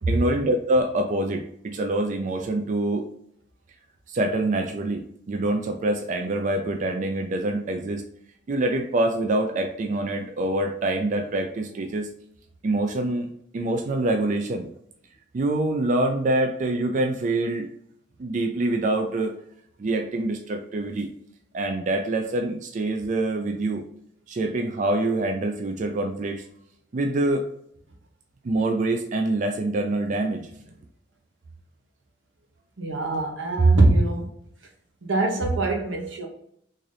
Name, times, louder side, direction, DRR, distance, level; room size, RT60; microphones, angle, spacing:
voice 1, 0.1-3.1 4.1-5.0 5.3-8.0 8.5-12.1 12.6-14.7 15.3-17.7 18.2-19.3 19.8-21.1 21.5-23.8 24.3-26.4 26.9-27.5 28.4-30.4, right 2 dB, 40° right, 4 dB, 0.3 m, -25 dB
voice 2, 32.8-34.3 35.0-36.3, right 2 dB, 85° right, 2 dB, 0.9 m, -21 dB
3.9 x 2.6 x 3.2 m, 0.70 s
head